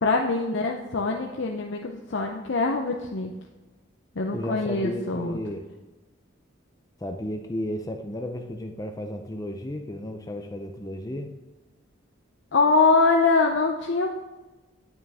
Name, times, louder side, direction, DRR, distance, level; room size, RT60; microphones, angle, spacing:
voice 1, 0.0-3.3 4.2-5.4 12.5-14.1, left 3 dB, 65° left, 1 dB, 0.6 m, -23 dB
voice 2, 4.3-5.7 7.0-11.3, left 1 dB, 15° left, 4 dB, 0.5 m, -33 dB
9.3 x 8.8 x 3.5 m, 1.1 s
head